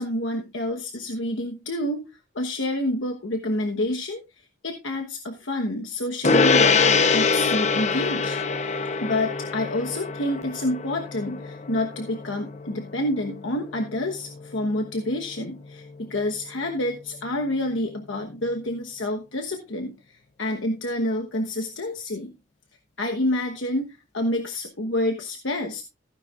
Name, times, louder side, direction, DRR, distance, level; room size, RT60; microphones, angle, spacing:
voice 1, 0.0-2.1 2.3-4.2 4.6-8.4 9.0-22.3 23.0-23.9 24.1-25.8, left 1 dB, 70° left, 4 dB, 1.2 m, -28 dB
Gong, 6.2-16.0, left 4 dB, 40° left, 0.9 m, -25 dB
15.0 x 10.0 x 2.5 m, 0.24 s
head